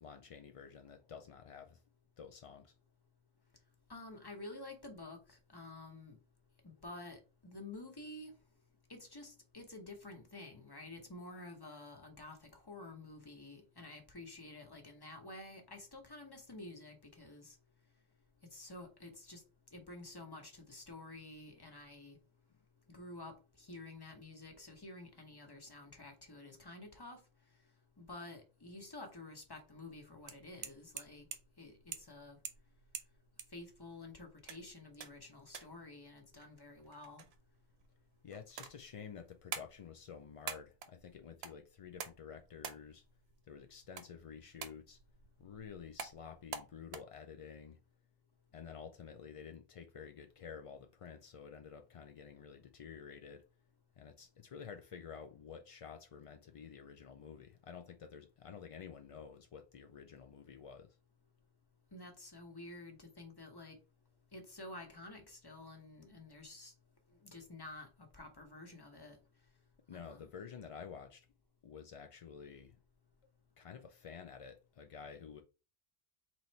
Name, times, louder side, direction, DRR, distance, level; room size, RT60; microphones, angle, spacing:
voice 1, 0.0-1.8 2.2-2.7 38.2-43.0 43.5-45.0 45.4-47.8 48.5-53.4 54.0-61.0 69.9-71.3 71.6-72.8 73.6-75.4, left 6 dB, 55° left, 0.3 m, -51 dB
voice 2, 3.9-6.2 6.6-8.3 8.9-17.6 18.5-19.4 19.7-22.2 22.9-27.2 28.0-31.3 31.6-32.4 33.5-37.2 61.9-63.8 64.3-66.7 67.2-69.2 69.9-70.3, left 2 dB, 25° left, 1.0 m, -50 dB
sound 1, 29.9-47.0, right 7 dB, 75° right, 0.9 m, -50 dB
4.0 x 3.1 x 4.3 m
omnidirectional pair, 1.1 m